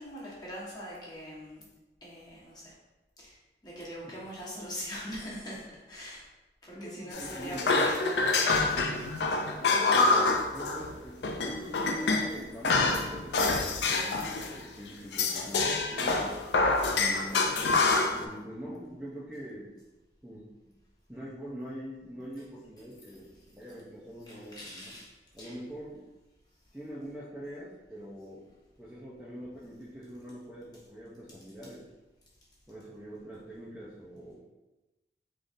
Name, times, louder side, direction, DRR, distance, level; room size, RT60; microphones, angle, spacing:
voice 1, 0.0-1.6 2.0-2.7 3.2-3.4 3.6-6.2 6.6-8.2 24.3-25.6, equal, 25° left, -7 dB, 1.3 m, -42 dB
voice 2, 6.7-7.9 9.6-16.4 16.9-17.5 18.1-19.8 20.2-20.7 21.1-24.9 25.3-26.1 26.7-28.5 28.8-31.9 32.7-34.4, equal, 10° right, -8 dB, 0.6 m, -43 dB
sound 1, 7.1-10.9 11.2-12.3 12.6-14.6 15.1-18.2, left 3 dB, 75° left, 0.5 m, -27 dB
5.0 x 3.8 x 2.6 m, 1.1 s
head